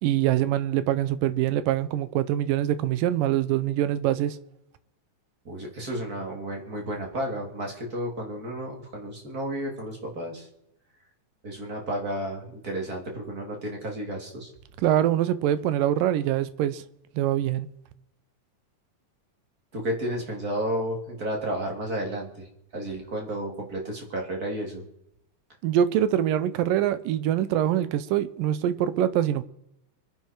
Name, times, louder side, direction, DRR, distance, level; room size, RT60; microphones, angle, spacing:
voice 1, 0.0-4.4 14.8-16.8 17.2-17.7 25.6-29.4, right 11 dB, 85° right, 2.5 m, -24 dB
voice 2, 5.4-10.5 11.4-14.5 19.7-22.5 22.7-24.9, right 1 dB, 25° right, 3.2 m, -32 dB
25.5 x 10.5 x 4.6 m
omnidirectional pair, 3.8 m